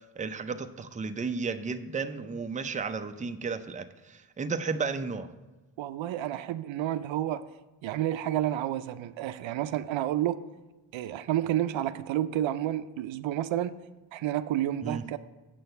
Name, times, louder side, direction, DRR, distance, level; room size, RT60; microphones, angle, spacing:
voice 1, 0.2-5.3 14.8-15.0, right 4 dB, 15° right, 8 dB, 0.5 m, -33 dB
voice 2, 5.8-7.4 7.8-10.4 10.9-13.7 14.1-15.2, right 12 dB, 75° right, 12 dB, 0.5 m, -30 dB
7.8 x 6.2 x 5.6 m, 1.1 s
cardioid pair, 80°, 47 cm